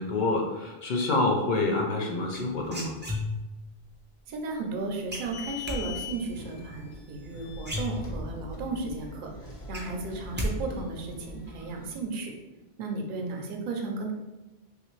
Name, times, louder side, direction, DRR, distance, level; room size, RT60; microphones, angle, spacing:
voice 1, 0.0-3.0, left 2 dB, 55° left, 1 dB, 0.6 m, -27 dB
sound 1, 2.3-3.6 5.1-5.8 7.2-7.3 7.6-8.4 8.8-8.9 9.3-10.5 10.8-11.2, left 1 dB, 20° right, 0.3 m, -33 dB
voice 2, 4.3-9.3 9.7-12.3 12.8-14.1, right 3 dB, 60° right, 2 dB, 0.7 m, -34 dB
sound 2, 5.1-11.9, left 3 dB, 85° left, 1.1 m, -42 dB
3.2 x 2.5 x 3.1 m, 1.1 s
omnidirectional pair, 1.1 m